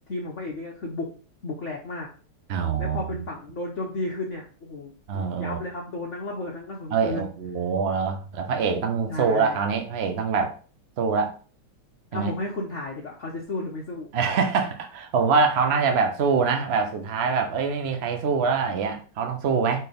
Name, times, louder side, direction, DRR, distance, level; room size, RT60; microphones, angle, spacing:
voice 1, 0.1-1.1 1.4-2.1 2.8-7.3 9.1-9.6 12.1-14.1, left 2 dB, 45° left, -1 dB, 1.0 m, -33 dB
voice 2, 2.5-3.2 5.1-5.6 6.9-10.6 11.0-11.3 12.1-12.3 14.1-19.9, right 5 dB, 75° right, 4 dB, 0.6 m, -24 dB
4.4 x 4.4 x 5.2 m, 0.39 s
omnidirectional pair, 2.3 m